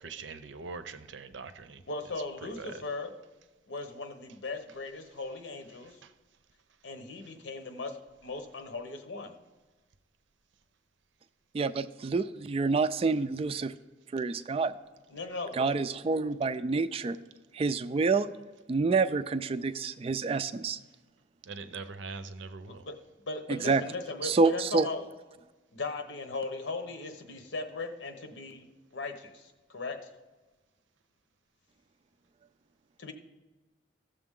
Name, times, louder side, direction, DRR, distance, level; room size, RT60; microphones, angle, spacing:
voice 1, 0.0-1.8 2.4-2.8 5.8-6.1 21.4-22.9, right 4 dB, 75° right, 0.6 m, -42 dB
voice 2, 1.9-3.1 3.7-6.0 6.8-9.3 15.1-15.7 22.7-22.9 23.2-25.0 25.7-28.6 28.9-30.1 33.0-33.1, left 3 dB, 75° left, 1.0 m, -38 dB
voice 3, 11.5-13.7 14.1-14.7 15.5-17.2 17.5-18.3 18.7-20.8 23.5-23.8 24.2-24.9, right 4 dB, 30° right, 0.3 m, -28 dB
15.0 x 6.8 x 3.7 m
head